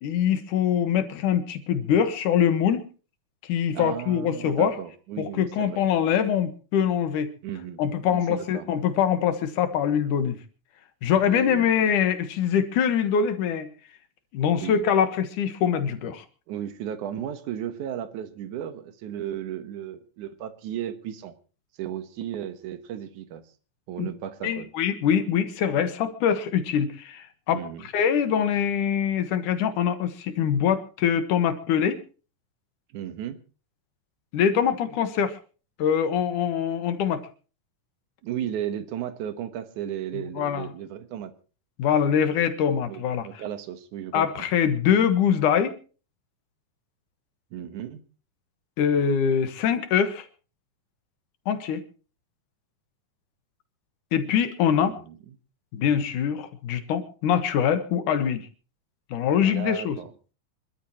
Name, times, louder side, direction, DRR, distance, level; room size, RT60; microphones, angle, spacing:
voice 1, 0.0-2.8 3.4-4.8 5.2-7.3 7.8-10.4 11.0-13.7 14.3-16.2 24.0-24.1 24.4-27.6 27.9-32.0 34.3-35.4 35.8-37.2 40.4-40.6 41.8-43.3 44.1-45.8 48.8-50.3 51.5-51.8 54.1-55.0 55.7-58.4 59.1-60.0, left 8 dB, 70° left, 10 dB, 2.8 m, -23 dB
voice 2, 3.7-5.8 7.4-7.8 8.1-8.7 11.3-11.7 14.6-14.8 16.0-16.1 16.5-21.3 21.8-23.4 23.9-24.7 27.5-27.9 32.9-33.4 38.2-41.3 42.9-44.3 47.5-48.0 54.8-55.4 59.4-60.1, right 10 dB, 70° right, 11 dB, 2.6 m, -35 dB
26.5 x 12.5 x 3.0 m, 0.36 s
omnidirectional pair, 3.9 m